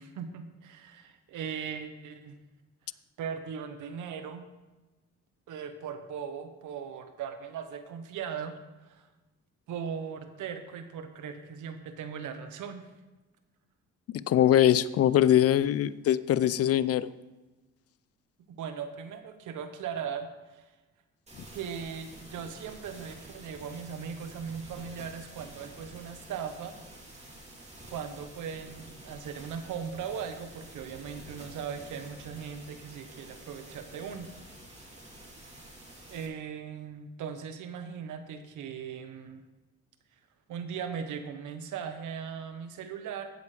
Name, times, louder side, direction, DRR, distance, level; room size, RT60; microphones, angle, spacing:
voice 1, 0.0-2.4 3.2-4.5 5.5-8.5 8.8-9.1 9.7-12.9 18.6-20.7 21.5-26.8 27.9-34.3 36.1-39.4 40.5-43.3, right 7 dB, 80° right, 8 dB, 1.2 m, -39 dB
voice 2, 14.1-17.1, left 11 dB, 50° left, 17 dB, 0.5 m, -22 dB
sound 1, 21.3-36.3, right 1 dB, 20° right, 3.2 m, -49 dB
15.5 x 8.3 x 3.4 m, 1.2 s
cardioid pair, 90°, 30 cm